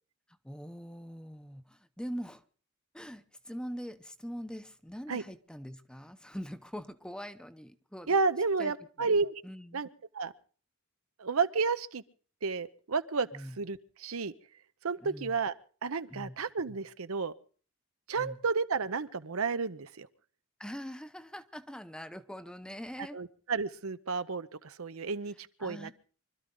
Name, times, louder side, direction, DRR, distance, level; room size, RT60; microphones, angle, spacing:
voice 1, 0.4-2.4 2.9-8.2 8.6-8.7 9.0-9.1 9.4-9.8 13.3-13.6 15.0-15.3 16.1-16.4 18.2-18.4 20.6-23.2 25.6-25.9, equal, 5° left, 0.7 m, -43 dB
voice 2, 8.1-9.3 9.7-9.9 10.1-10.3 11.2-12.0 12.4-14.3 14.8-15.5 15.8-17.3 18.1-20.1 23.1-25.9, right 4 dB, 80° right, 0.8 m, -31 dB
25.0 x 13.0 x 3.9 m
head